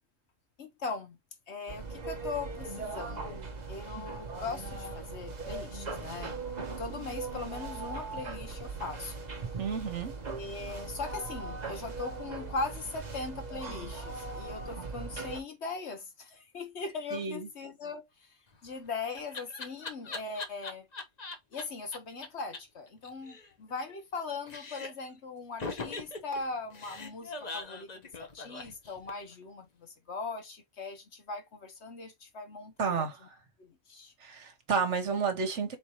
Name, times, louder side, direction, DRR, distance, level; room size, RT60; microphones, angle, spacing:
voice 1, 0.6-1.2 1.5-3.4 3.7-6.4 6.8-9.1 10.3-18.1 18.6-20.9 21.5-33.0 33.6-34.1, left 4 dB, 60° left, 1.4 m, -40 dB
sound 1, 1.7-15.4, right 3 dB, 35° right, 1.0 m, -39 dB
voice 2, 9.6-10.1 14.8-14.9 17.1-17.5 32.8-33.2 34.2-35.8, right 5 dB, 65° right, 1.4 m, -31 dB
Laughter, 18.5-21.6 21.9-22.0 22.2-22.3 22.5-22.6 22.9-24.2 24.5-25.1 25.6-29.3, left 3 dB, 35° left, 0.9 m, -41 dB
4.3 x 4.1 x 2.9 m
omnidirectional pair, 1.3 m